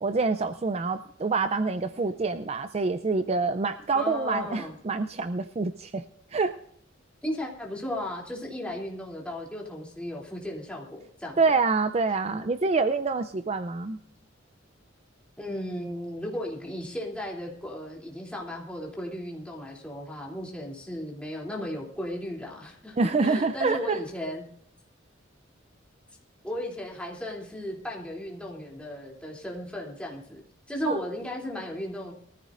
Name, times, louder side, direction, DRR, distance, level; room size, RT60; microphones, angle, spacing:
voice 1, 0.0-6.0 6.3-6.5 11.4-14.0 23.0-24.0 30.9-31.0, right 4 dB, 35° right, 10 dB, 0.5 m, -26 dB
voice 2, 3.9-4.7 7.2-11.4 15.4-23.0 23.2-24.4 26.4-30.4 30.7-32.1, left 1 dB, 5° left, -2 dB, 2.9 m, -35 dB
22.5 x 14.0 x 2.5 m, 0.63 s
head